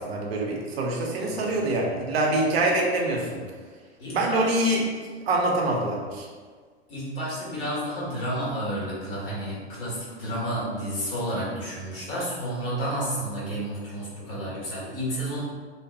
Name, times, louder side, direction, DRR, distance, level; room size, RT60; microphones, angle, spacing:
voice 1, 0.0-3.4 4.1-4.9 5.2-6.3, right 2 dB, 65° right, -1 dB, 0.6 m, -25 dB
voice 2, 1.2-1.6 4.0-4.4 6.9-15.4, right 1 dB, 55° left, -7 dB, 1.5 m, -31 dB
2.7 x 2.1 x 2.6 m, 1.6 s
hypercardioid pair, 110°, 34 cm